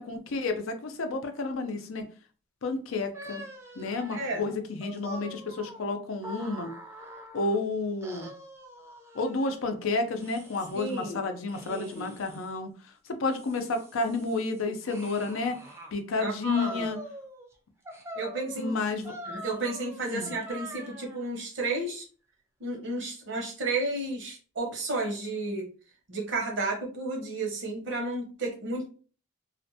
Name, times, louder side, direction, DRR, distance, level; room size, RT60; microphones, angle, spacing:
voice 1, 0.0-2.0 2.6-3.4 3.8-6.7 7.3-8.3 9.1-12.7 13.1-15.6 15.9-17.0 18.6-19.1 20.1-20.3, left 3 dB, 90° left, 6 dB, 0.5 m, -31 dB
sound 1, 3.1-7.6 8.0-9.5 10.2-11.1 11.5-12.5 13.1-15.9 16.5-17.5 17.9-21.3, right 1 dB, 15° right, 0.4 m, -44 dB
voice 2, 4.1-4.5 10.7-11.2 11.7-12.1 16.2-16.9 18.1-18.7 19.3-22.0 22.6-25.7 26.1-28.9, right 2 dB, 65° right, 0 dB, 0.8 m, -32 dB
2.5 x 2.1 x 2.7 m, 0.38 s
head